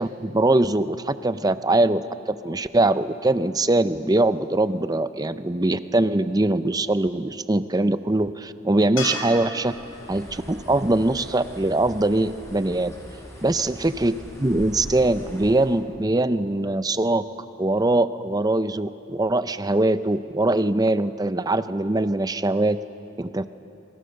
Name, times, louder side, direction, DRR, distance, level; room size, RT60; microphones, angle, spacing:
voice 1, 0.0-2.0 2.3-9.7 10.1-12.9 13.4-17.3 17.6-22.8 23.2-23.5, right 2 dB, 20° right, 12 dB, 0.6 m, -22 dB
sound 1, 9.0-12.2 15.5-15.6, left 1 dB, 80° left, 7.3 m, -36 dB
Bird, 9.6-15.8, equal, 15° left, 5.4 m, -41 dB
26.5 x 25.0 x 6.6 m, 3.0 s
head